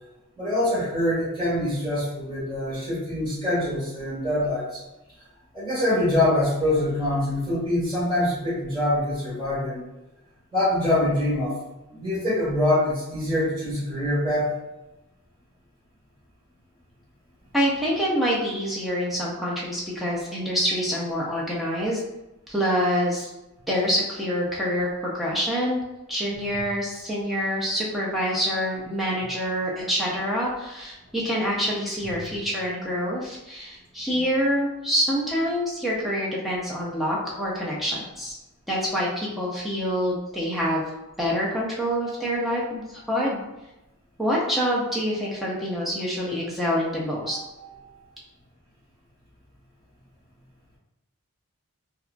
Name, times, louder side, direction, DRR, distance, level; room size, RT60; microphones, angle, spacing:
voice 1, 0.4-4.8 5.5-9.8 10.5-11.6 11.9-14.6 32.1-32.2 47.2-48.0, left 1 dB, 20° right, -11 dB, 1.5 m, -25 dB
voice 2, 17.5-22.0 22.5-23.3 23.7-25.8 26.1-38.4 38.7-40.8 41.2-43.4 44.2-47.4, equal, ahead, -6 dB, 0.4 m, -26 dB
2.8 x 2.3 x 2.4 m, 0.96 s
head